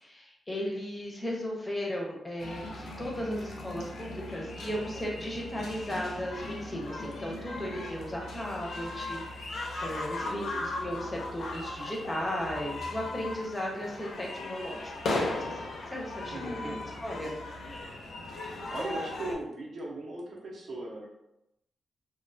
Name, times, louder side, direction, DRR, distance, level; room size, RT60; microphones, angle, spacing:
voice 1, 0.0-14.9 15.2-16.7 17.0-17.3, equal, 15° left, -2 dB, 0.5 m, -36 dB
sound 1, 2.4-19.3, left 2 dB, 75° left, 0.4 m, -38 dB
voice 2, 10.2-10.6 16.3-16.8 18.7-21.1, right 1 dB, 60° right, -2 dB, 0.6 m, -38 dB
2.3 x 2.1 x 2.5 m, 0.85 s
wide cardioid pair, 140°, 0 cm